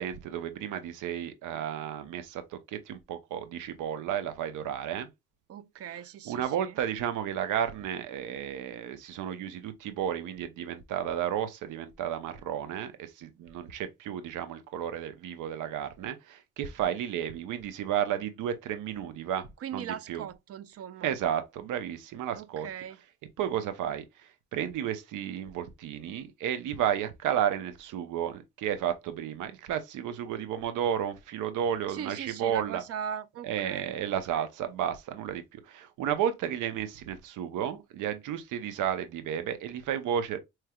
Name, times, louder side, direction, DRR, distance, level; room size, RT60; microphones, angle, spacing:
voice 1, 0.0-5.1 6.3-20.2 21.0-22.7 23.4-24.0 24.5-32.8 33.4-40.4, right 9 dB, 85° right, 0.7 m, -32 dB
voice 2, 5.5-6.8 19.6-21.2 22.3-23.0 31.9-34.0 34.3-34.5, right 8 dB, 50° right, 0.5 m, -39 dB
4.4 x 3.2 x 2.3 m
cardioid pair, 90°, 30 cm